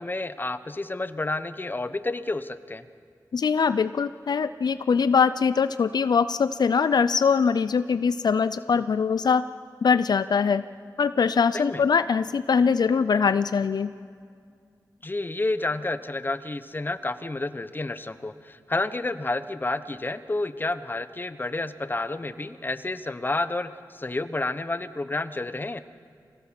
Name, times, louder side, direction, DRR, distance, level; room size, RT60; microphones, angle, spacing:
voice 1, 0.0-2.8 11.5-11.8 15.0-25.8, left 2 dB, 30° left, 12 dB, 1.0 m, -30 dB
voice 2, 3.3-9.4 9.8-10.6 11.0-13.9, left 6 dB, 75° left, 13 dB, 0.5 m, -22 dB
25.0 x 17.5 x 7.5 m, 2.2 s
wide cardioid pair, 65°, 7 cm